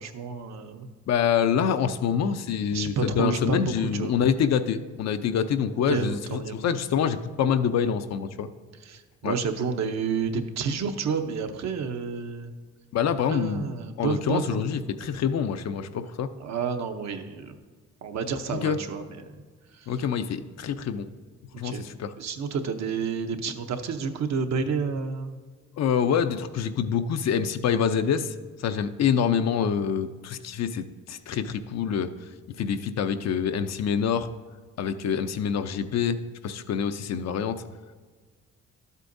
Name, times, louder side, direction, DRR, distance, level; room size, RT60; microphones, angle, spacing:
voice 1, 0.0-0.9 2.7-4.2 5.9-6.6 8.9-12.5 13.3-14.6 16.4-17.5 18.0-19.0 19.7-19.9 21.6-21.9 22.2-25.4, right 5 dB, 65° right, 6 dB, 0.9 m, -30 dB
voice 2, 1.1-8.5 9.2-9.3 12.9-13.7 14.0-16.3 18.5-18.8 19.9-21.1 21.6-22.1 25.8-28.3 28.6-32.1 32.6-34.3 34.8-36.2 36.4-37.6, left 7 dB, 60° left, 10 dB, 0.6 m, -26 dB
12.0 x 8.2 x 2.6 m, 1.5 s
cardioid pair, 90°, 30 cm